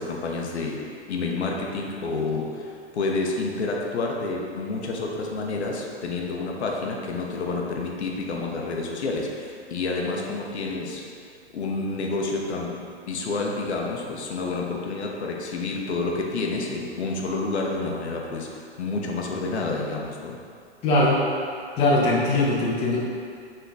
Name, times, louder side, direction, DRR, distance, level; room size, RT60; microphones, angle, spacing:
voice 1, 0.0-11.1 11.5-20.4, left 3 dB, 75° left, 0 dB, 0.8 m, -29 dB
voice 2, 20.8-21.2 21.8-23.0, left 2 dB, 20° left, -5 dB, 0.7 m, -20 dB
4.1 x 3.7 x 3.3 m, 2.3 s
hypercardioid pair, 130°, 34 cm